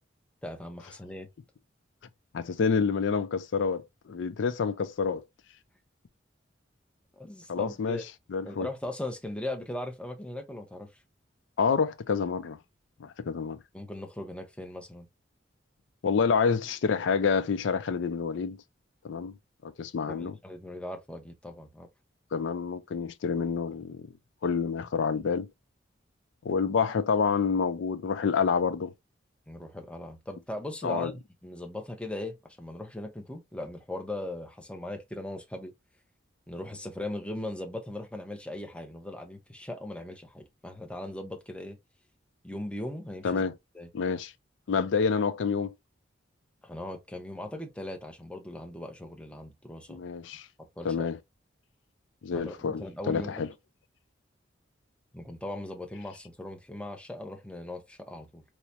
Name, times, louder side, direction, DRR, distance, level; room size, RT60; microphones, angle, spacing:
voice 1, 0.4-1.3 7.2-8.0 8.4-11.0 13.7-15.1 20.1-21.9 29.5-35.7 36.5-41.8 42.4-43.4 43.7-43.9 46.6-50.0 50.8-51.1 52.3-53.4 55.1-58.4, left 1 dB, 5° left, 0.6 m, -39 dB
voice 2, 2.3-5.2 7.5-8.0 8.3-8.7 11.6-12.6 13.0-13.6 16.0-18.6 19.0-19.3 19.6-20.3 22.3-24.1 24.4-25.5 26.4-28.9 30.8-31.1 43.2-43.5 43.9-44.3 44.7-45.7 49.9-50.5 50.8-51.2 52.2-53.5, left 5 dB, 70° left, 0.4 m, -28 dB
4.6 x 2.0 x 2.8 m
head